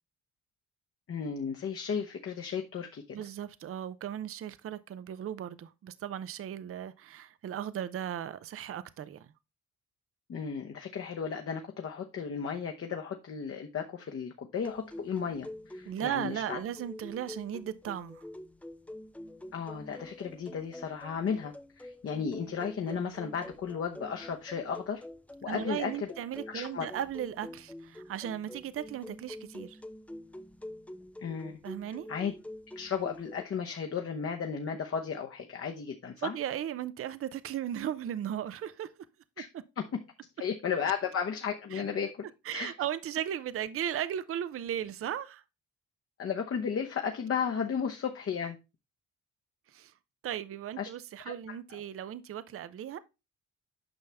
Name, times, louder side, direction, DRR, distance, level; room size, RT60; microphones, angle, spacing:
voice 1, 1.1-3.2 10.3-16.6 19.5-25.0 25.4-26.1 26.5-26.9 31.2-31.6 32.1-32.3 32.8-36.4 39.4-39.5 39.8-39.9 40.4-42.3 42.5-42.7 46.2-48.6 50.8-50.9 51.2-51.3, left 6 dB, 50° left, 1.0 m, -34 dB
voice 2, 3.1-9.3 15.9-18.2 25.5-29.8 31.6-32.1 36.2-38.9 41.7-41.8 42.4-45.4 49.7-49.9 50.2-53.0, right 10 dB, 45° right, 0.6 m, -36 dB
sound 1, 14.5-33.4, left 1 dB, 5° left, 0.5 m, -47 dB
8.9 x 5.5 x 3.4 m
cardioid pair, 90°, 30 cm